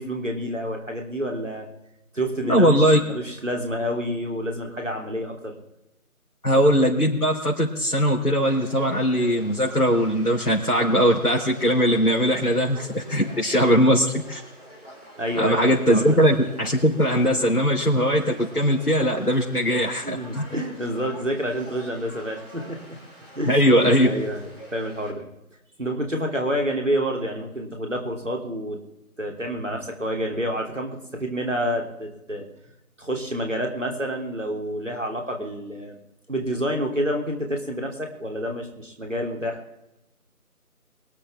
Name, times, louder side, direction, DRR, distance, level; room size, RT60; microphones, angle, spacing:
voice 1, 0.0-1.7 2.1-5.6 15.2-16.2 20.0-22.8 23.3-23.6 24.0-25.3 25.8-28.8 29.2-32.5 33.0-36.0 36.3-39.6, equal, 55° right, 2 dB, 3.3 m, -28 dB
voice 2, 2.4-3.0 6.4-14.4 15.3-20.4 23.5-24.1, equal, 85° left, -4 dB, 3.7 m, -20 dB
Conversation / Crowd, 8.5-25.1, equal, 20° left, 4.2 m, -44 dB
24.5 x 8.9 x 3.6 m, 0.89 s
figure-of-eight pair, 180°, 45 cm